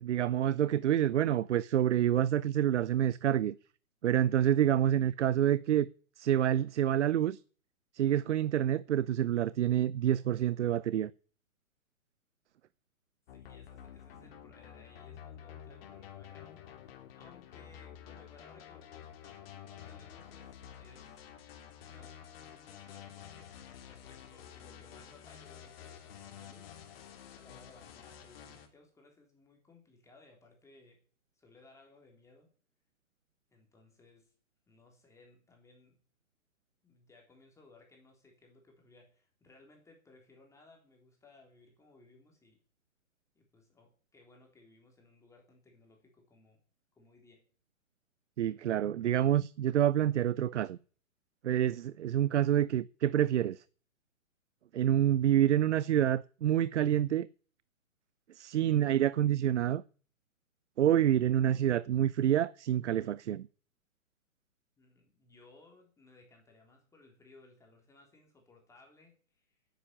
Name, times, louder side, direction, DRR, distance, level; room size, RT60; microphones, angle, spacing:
voice 1, 0.0-3.5 4.0-5.9 6.2-7.4 7.9-11.1 48.4-50.8 51.4-53.6 54.7-57.3 58.3-59.8 60.8-63.5, right 11 dB, 60° right, 0.6 m, -27 dB
sound 1, 13.3-28.7, left 9 dB, 45° left, 3.1 m, -50 dB
voice 2, 13.3-21.3 21.8-27.0 27.2-31.0 31.4-32.5 33.5-34.3 34.7-36.0 36.8-42.6 43.4-46.6 47.0-47.5 64.8-69.6, left 3 dB, 5° left, 3.5 m, -61 dB
10.0 x 10.0 x 8.9 m
hypercardioid pair, 145°, 42 cm